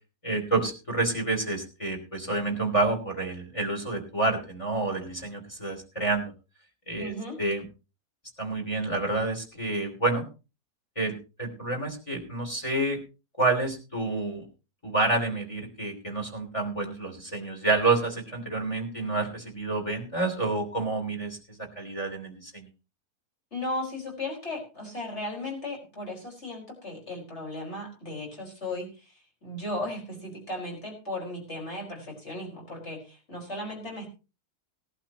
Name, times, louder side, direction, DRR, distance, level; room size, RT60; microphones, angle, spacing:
voice 1, 0.2-6.3 6.9-7.1 7.4-7.6 8.4-10.2 10.9-13.0 13.4-14.5 14.8-22.7, right 2 dB, 20° left, 4 dB, 3.1 m, -28 dB
voice 2, 7.0-7.4 23.5-34.1, left 1 dB, 45° left, -1 dB, 5.4 m, -36 dB
18.5 x 11.5 x 2.9 m, 0.31 s
omnidirectional pair, 1.7 m